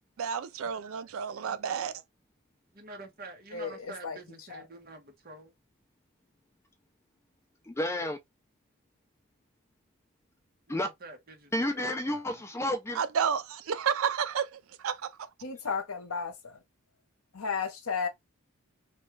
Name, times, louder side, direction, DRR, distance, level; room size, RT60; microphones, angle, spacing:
voice 1, 0.2-1.9 12.9-14.5 14.8-15.1, right 7 dB, 65° right, 0.4 m, -30 dB
voice 2, 2.7-5.5 10.7-12.4, right 2 dB, 40° right, 1.0 m, -48 dB
voice 3, 3.5-4.2 4.5-4.6 15.4-16.6 17.3-18.1, left 5 dB, 75° left, 0.8 m, -34 dB
voice 4, 7.7-8.2 10.7-10.9 11.5-13.0, left 1 dB, 10° left, 0.3 m, -31 dB
3.1 x 2.3 x 3.1 m
head